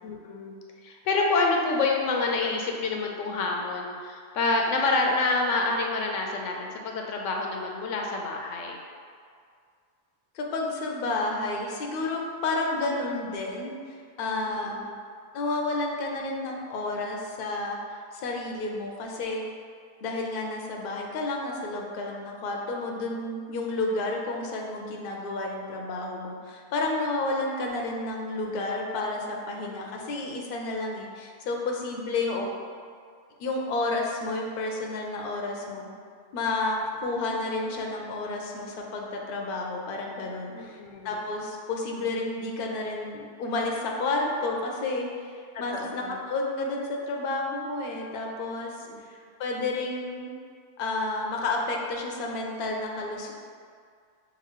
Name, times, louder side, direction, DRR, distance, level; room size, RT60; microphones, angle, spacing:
voice 1, 0.0-8.8 14.5-15.0 29.9-30.1 32.3-32.5 40.5-41.2 45.5-46.2 48.9-49.0, left 3 dB, 90° left, 0 dB, 0.9 m, -28 dB
voice 2, 10.3-14.8 15.3-17.8 18.1-19.4 20.0-32.5 33.4-35.9 36.3-40.8 41.0-50.3 50.8-53.3, left 2 dB, 60° left, 0 dB, 0.7 m, -31 dB
5.9 x 2.6 x 2.9 m, 2.1 s
omnidirectional pair, 1.2 m